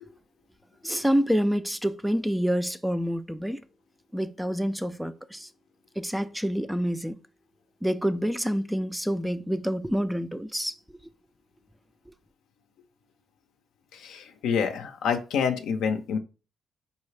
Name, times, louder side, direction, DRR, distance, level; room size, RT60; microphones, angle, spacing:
voice 1, 0.8-3.6 4.1-5.5 6.0-7.2 7.8-10.8, equal, 5° right, 0.3 m, -27 dB
voice 2, 13.9-16.2, left 6 dB, 80° left, 0.5 m, -27 dB
4.7 x 2.7 x 3.2 m
cardioid pair, 90°, 0 cm